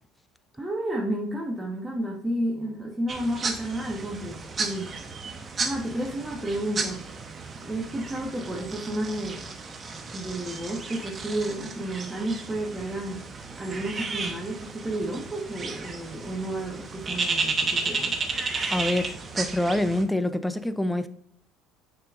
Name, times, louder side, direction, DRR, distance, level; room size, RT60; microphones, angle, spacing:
voice 1, 0.5-5.0 5.6-7.0 7.5-9.4 10.1-13.2 13.6-18.2, right 1 dB, 20° right, 1.3 m, -31 dB
sound 1, 3.1-20.0, right 4 dB, 35° right, 0.9 m, -33 dB
voice 2, 18.7-21.1, left 1 dB, 5° left, 0.6 m, -26 dB
6.7 x 5.6 x 2.5 m
hypercardioid pair, 70°, 0 cm